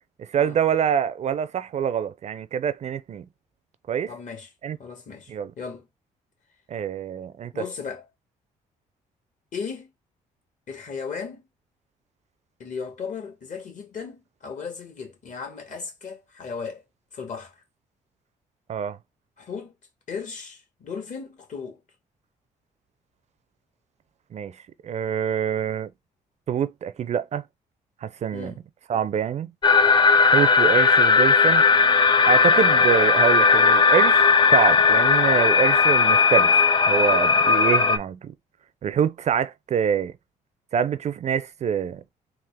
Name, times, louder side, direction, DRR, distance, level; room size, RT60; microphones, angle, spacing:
voice 1, 0.2-3.3 3.9-4.1 4.6-4.8 5.3-5.5 6.7-7.6 18.7-19.0 24.3-24.5 24.8-25.9 26.5-27.4 28.0-28.5 28.9-29.5 30.3-31.7 32.2-36.5 36.9-38.3 38.8-40.1 40.7-42.0, right 8 dB, 50° right, 0.4 m, -25 dB
voice 2, 4.1-4.5 4.8-5.9 7.5-8.0 9.5-9.9 10.7-11.4 12.6-16.8 17.1-17.5 19.4-19.7 20.1-21.8 28.3-28.6, left 5 dB, 55° left, 1.5 m, -36 dB
sound 1, 29.6-38.0, left 4 dB, 30° left, 0.5 m, -17 dB
3.6 x 2.4 x 3.3 m
cardioid pair, 75°, 15 cm